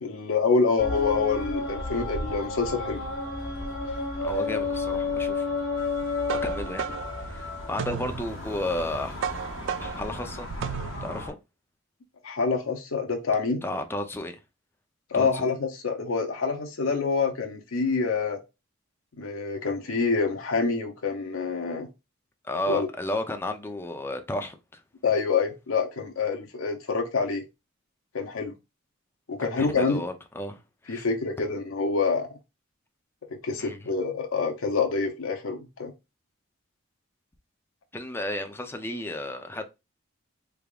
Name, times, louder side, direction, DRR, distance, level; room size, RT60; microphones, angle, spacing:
voice 1, 0.0-3.0 12.2-13.6 15.1-18.4 19.2-21.9 22.7-22.9 25.0-27.5 28.1-28.5 29.3-30.0 30.9-32.3 33.3-35.9, left 4 dB, 80° left, 0.7 m, -26 dB
sound 1, 0.8-11.3, left 3 dB, 65° left, 1.2 m, -32 dB
voice 2, 4.2-5.5 6.3-6.9 7.2-9.2 9.8-10.5 11.0-11.4 13.6-14.4 15.1-15.5 22.4-24.8 29.4-31.1 33.6-33.9 37.9-39.7, left 1 dB, 10° left, 0.5 m, -33 dB
sound 2, 5.9-11.3, right 7 dB, 65° right, 0.4 m, -35 dB
3.5 x 3.4 x 2.3 m
head